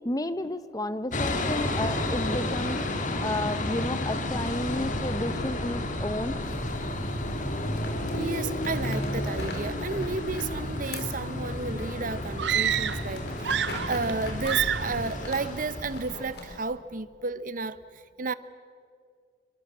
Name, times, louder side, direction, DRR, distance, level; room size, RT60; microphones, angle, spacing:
voice 1, 0.0-6.4, left 1 dB, 20° left, 0.9 m, -32 dB
sound 1, 1.1-16.2, left 1 dB, 50° left, 2.2 m, -31 dB
sound 2, 6.4-16.6, left 1 dB, 65° left, 4.5 m, -42 dB
voice 2, 8.1-18.3, right 4 dB, 50° right, 0.8 m, -32 dB
sound 3, 12.4-13.1 13.4-14.2 14.4-15.0, right 9 dB, 80° right, 0.6 m, -28 dB
26.5 x 23.5 x 7.4 m
head